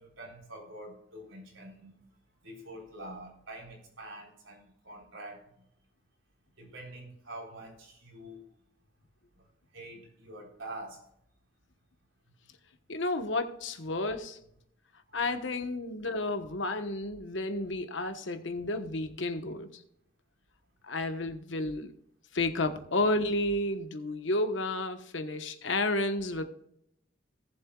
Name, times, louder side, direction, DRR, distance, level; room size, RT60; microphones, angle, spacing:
voice 1, 0.0-1.9 2.4-5.4 6.6-8.4 9.7-11.0 15.1-15.3, right 1 dB, 85° right, 3.9 m, -46 dB
voice 2, 12.9-14.4 15.1-19.8 20.8-21.9 22.3-26.4, left 2 dB, 75° left, 1.1 m, -31 dB
18.0 x 7.4 x 2.3 m
head